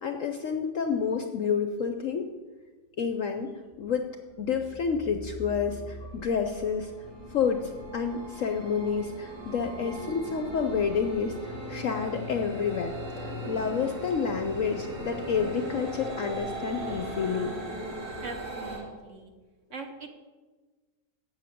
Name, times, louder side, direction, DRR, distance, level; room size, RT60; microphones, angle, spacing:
voice 1, 0.0-2.3 3.0-3.5 3.8-4.1 4.4-6.9 7.3-17.5, left 6 dB, 65° left, 6 dB, 0.8 m, -29 dB
sound 1, 3.8-3.9 4.3-18.8, right 1 dB, 85° right, 4.2 m, -38 dB
voice 2, 18.2-19.3 19.7-20.1, right 4 dB, 50° right, 5 dB, 1.0 m, -41 dB
8.1 x 7.0 x 8.4 m, 1.3 s
omnidirectional pair, 1.9 m